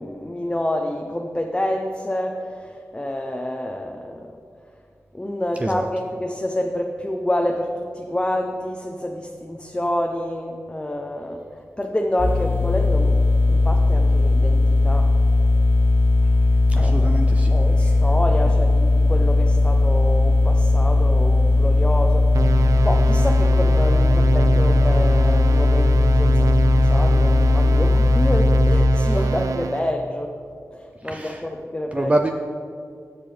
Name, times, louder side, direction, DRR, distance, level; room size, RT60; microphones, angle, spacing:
voice 1, 0.0-4.3 5.1-13.1 13.5-15.1 16.8-17.2 17.5-30.3 30.7-32.1, left 1 dB, 15° left, 2 dB, 0.7 m, -28 dB
sound 1, 12.2-28.8, left 2 dB, 40° left, 1.6 m, -17 dB
voice 2, 16.7-17.5 31.1-31.5 31.9-32.3, right 1 dB, 25° right, 4 dB, 0.5 m, -25 dB
sound 2, 22.3-29.9, right 4 dB, 80° right, 0.4 m, -25 dB
17.0 x 5.9 x 3.4 m, 2.3 s
cardioid pair, 55°, 6 cm